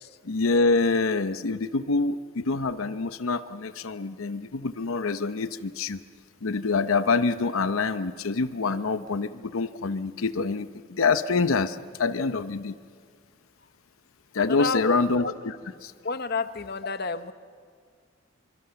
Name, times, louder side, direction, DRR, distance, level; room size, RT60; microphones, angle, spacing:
voice 1, 0.2-6.0 6.4-12.7 14.3-15.3 15.8-15.9, left 4 dB, 80° left, 12 dB, 0.7 m, -26 dB
voice 2, 14.4-15.3 16.0-17.3, left 3 dB, 50° left, 11 dB, 0.9 m, -30 dB
26.0 x 24.5 x 6.9 m, 2.1 s
head